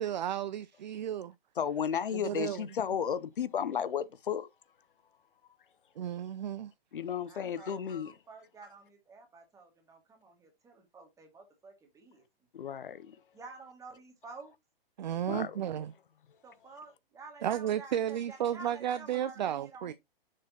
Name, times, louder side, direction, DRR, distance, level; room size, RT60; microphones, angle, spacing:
voice 1, 0.0-1.3 2.1-2.6 6.0-6.7 15.0-15.9 17.4-19.9, right 10 dB, 50° right, 0.5 m, -33 dB
voice 2, 1.6-4.5 6.9-8.1 12.5-13.2 15.3-15.6, left 8 dB, 60° left, 0.9 m, -33 dB
voice 3, 7.3-12.2 13.3-14.5 16.4-19.9, right 3 dB, 10° right, 2.2 m, -51 dB
7.4 x 6.5 x 2.9 m
figure-of-eight pair, 120°, 30 cm